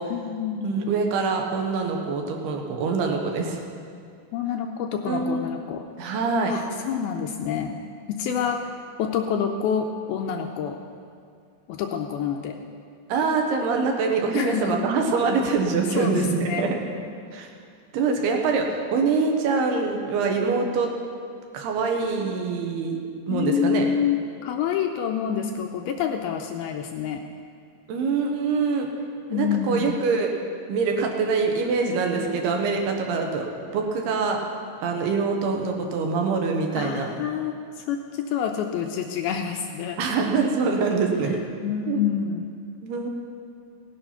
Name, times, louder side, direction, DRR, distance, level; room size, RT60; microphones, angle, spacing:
voice 1, 0.1-0.8 4.3-5.9 6.5-7.8 8.1-8.7 9.0-10.8 11.7-12.6 14.3-14.8 16.0-16.7 23.3-27.2 29.3-30.0 36.8-40.0 41.3-42.5, left 8 dB, 80° left, 3 dB, 2.3 m, -27 dB
voice 2, 0.6-3.6 5.0-5.5 6.0-6.5 13.1-16.8 17.3-17.5 17.9-20.9 21.5-23.0 23.3-23.9 27.9-28.9 29.3-30.3 30.7-33.5 33.7-34.4 34.8-37.1 40.0-41.4 41.9-42.0 42.8-43.1, right 4 dB, 75° right, 2 dB, 3.1 m, -24 dB
17.5 x 8.8 x 5.8 m, 2.3 s
omnidirectional pair, 4.8 m